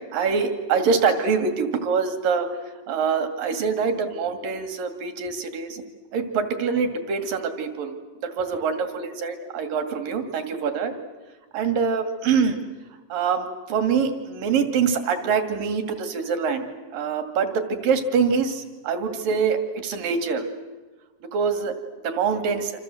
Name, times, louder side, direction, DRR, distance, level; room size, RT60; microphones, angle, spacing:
voice 1, 0.1-2.5 2.9-5.8 6.1-8.0 8.2-10.9 11.5-12.6 13.1-16.6 16.9-20.5 21.3-21.7 22.0-22.7, right 5 dB, 70° right, 7 dB, 4.0 m, -24 dB
28.0 x 27.5 x 7.8 m, 1.3 s
omnidirectional pair, 4.1 m